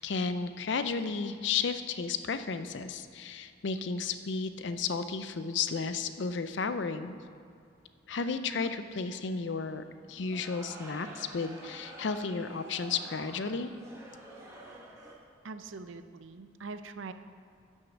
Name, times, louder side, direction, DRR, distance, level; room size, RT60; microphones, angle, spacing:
voice 1, 0.0-7.1 8.1-13.7, left 5 dB, 60° left, 10 dB, 0.5 m, -33 dB
sound 1, 10.1-15.1, right 1 dB, 15° right, 1.4 m, -48 dB
voice 2, 15.4-17.1, right 4 dB, 80° right, 10 dB, 0.5 m, -43 dB
10.0 x 6.3 x 6.0 m, 2.3 s
head